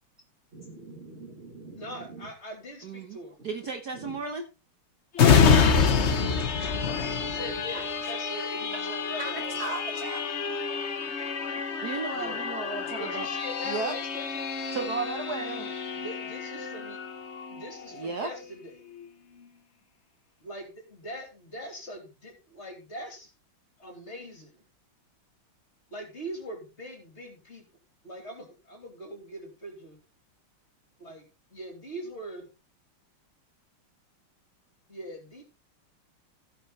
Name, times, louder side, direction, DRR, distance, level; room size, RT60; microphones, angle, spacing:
voice 1, 0.5-2.3 3.9-4.2, right 3 dB, 30° right, 2 dB, 1.7 m, -45 dB
voice 2, 1.8-3.4 6.4-9.7 11.0-11.1 12.1-12.4 12.8-14.4 15.9-17.0 17.5-18.8 20.4-23.3 23.8-24.6 25.9-27.6 28.0-30.0 31.0-32.5 34.9-35.4, equal, 30° left, 3 dB, 3.4 m, -42 dB
voice 3, 2.8-3.2 3.4-4.4 7.7-7.8 8.7-8.8 9.2-10.3 11.8-13.3 13.6-13.9 14.7-15.7 17.9-18.3, right 4 dB, 55° right, 5 dB, 1.4 m, -34 dB
sound 1, 5.1-18.5 18.9-19.1, left 6 dB, 45° left, 0.9 m, -27 dB
16.5 x 5.6 x 4.2 m, 0.30 s
omnidirectional pair, 2.4 m